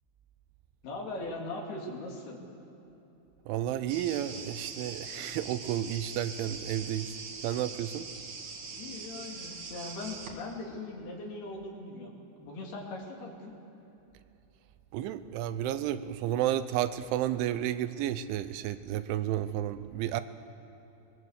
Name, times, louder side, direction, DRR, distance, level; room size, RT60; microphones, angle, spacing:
voice 1, 0.8-2.4 8.7-12.1 12.4-13.5, left 2 dB, 60° left, -1 dB, 4.4 m, -40 dB
voice 2, 3.5-7.1 7.4-8.1 14.9-20.2, right 12 dB, 85° right, 12 dB, 3.1 m, -32 dB
sound 1, 3.9-10.3, right 4 dB, 50° right, 2.8 m, -42 dB
22.0 x 20.0 x 8.1 m, 3.0 s
omnidirectional pair, 5.4 m